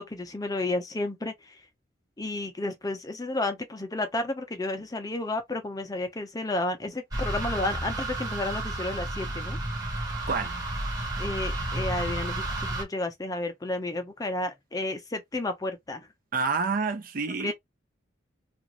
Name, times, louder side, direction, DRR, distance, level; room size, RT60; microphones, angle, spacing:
voice 1, 0.0-1.6 2.2-9.6 11.2-16.1 17.4-17.5, left 2 dB, 20° left, 0.5 m, -32 dB
sound 1, 7.1-12.8, right 1 dB, 20° right, 0.9 m, -31 dB
voice 2, 16.3-17.5, right 4 dB, 45° right, 0.5 m, -28 dB
2.5 x 2.5 x 2.9 m
head